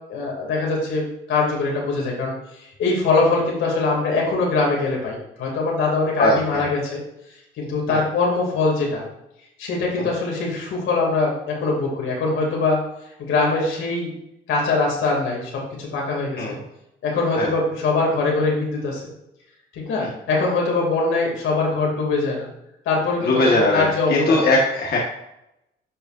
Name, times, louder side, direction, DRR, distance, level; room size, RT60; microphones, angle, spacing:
voice 1, 0.1-1.0 1.3-2.3 2.8-7.0 7.6-9.0 9.6-12.8 13.2-14.1 14.5-16.6 17.0-19.0 19.7-22.5 22.8-24.4, left 3 dB, 80° left, -2 dB, 2.9 m, -22 dB
voice 2, 6.2-6.6 7.9-8.0 10.0-10.1 16.4-16.5 17.4-17.5 20.0-20.1 23.3-23.8 24.1-25.0, left 2 dB, 55° left, -3 dB, 1.7 m, -19 dB
10.0 x 5.7 x 2.7 m, 0.85 s
cardioid pair, 90°, 20 cm